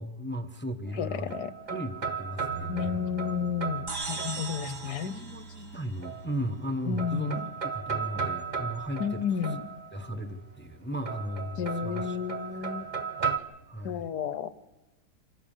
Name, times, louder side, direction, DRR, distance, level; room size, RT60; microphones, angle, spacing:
voice 1, 0.0-1.4 1.7-2.9 4.6-9.2 9.9-12.2 13.7-14.0, equal, 10° left, 8 dB, 0.9 m, -36 dB
sound 1, 0.9-4.9 6.0-6.7 7.0-10.2 11.1-13.4, right 6 dB, 30° right, 1.0 m, -35 dB
voice 2, 1.0-1.5 2.7-5.1 6.9-7.4 9.0-9.6 11.6-12.9 13.8-14.5, left 7 dB, 75° left, 15 dB, 1.4 m, -32 dB
Bass guitar, 2.5-8.7, right 6 dB, 60° right, 7.7 m, -45 dB
sound 2, 3.9-6.5, right 3 dB, 75° right, 3.4 m, -39 dB
26.0 x 16.0 x 7.3 m, 1.2 s
omnidirectional pair, 1.8 m